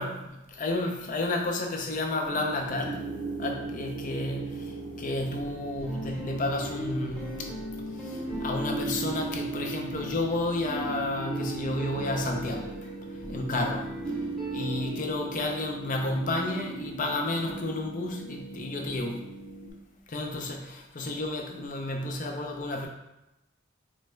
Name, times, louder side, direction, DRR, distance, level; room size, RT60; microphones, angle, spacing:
voice 1, 0.0-3.0 3.4-4.7 5.0-7.3 8.1-12.7 13.3-13.9 14.5-19.3 20.1-22.9, left 2 dB, 40° left, 1 dB, 0.5 m, -31 dB
sound 1, 2.3-19.7, right 3 dB, 70° right, 0.6 m, -37 dB
sound 2, 5.4-14.9, left 1 dB, 5° left, 1.0 m, -40 dB
3.9 x 2.2 x 3.2 m, 0.94 s
head